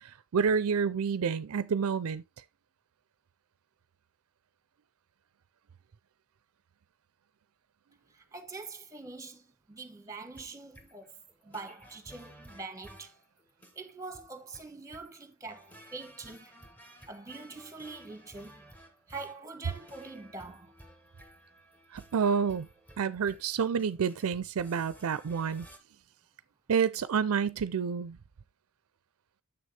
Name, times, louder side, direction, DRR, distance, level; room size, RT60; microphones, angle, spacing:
voice 1, 0.0-2.2 21.9-22.7 23.0-25.7 26.7-28.2, right 6 dB, 70° right, 0.4 m, -29 dB
voice 2, 8.1-13.1 13.7-16.7 17.1-18.7 19.1-20.7, right 3 dB, 15° right, 1.2 m, -44 dB
sound 1, 10.1-25.8, right 1 dB, 10° left, 1.4 m, -55 dB
7.2 x 6.3 x 3.2 m
head